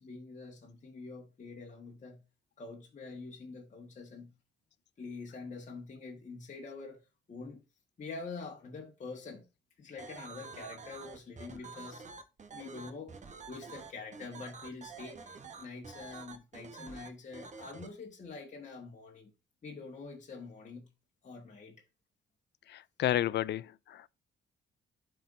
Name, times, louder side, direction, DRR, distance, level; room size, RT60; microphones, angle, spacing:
voice 1, 0.0-2.2 2.6-4.3 5.0-7.0 7.3-7.6 8.0-9.5 9.8-12.0 12.5-13.1 13.5-19.3 19.6-20.9 21.2-21.8, left 4 dB, 40° left, 1.6 m, -46 dB
sound 1, 10.0-17.9, right 4 dB, 35° right, 1.2 m, -48 dB
voice 2, 22.7-24.1, left 13 dB, 60° left, 0.4 m, -32 dB
11.5 x 4.6 x 2.6 m
cardioid pair, 90°, 20 cm